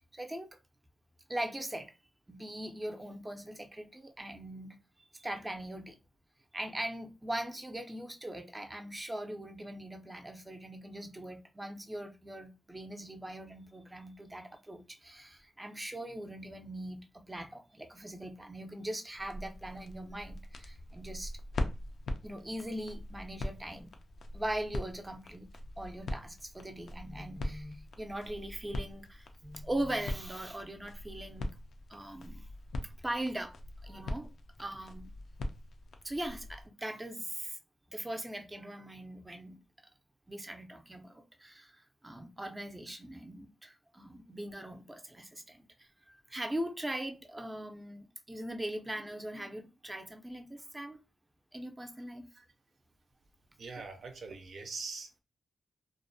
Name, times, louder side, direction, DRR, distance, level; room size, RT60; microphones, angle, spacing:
voice 1, 0.1-0.5 1.3-1.9 2.3-4.8 5.1-6.0 6.5-21.3 22.2-23.9 24.3-25.5 25.8-31.5 31.9-32.4 33.0-33.5 33.8-34.3 34.6-35.1 36.0-37.6 37.9-39.6 40.3-41.8 42.0-51.0 51.5-52.2, right 1 dB, 15° right, 0.4 m, -40 dB
sound 1, 19.1-36.7, left 1 dB, 85° left, 0.3 m, -42 dB
voice 2, 53.6-55.2, right 4 dB, 75° right, 0.4 m, -43 dB
2.4 x 2.0 x 2.6 m
cardioid pair, 80°, 0 cm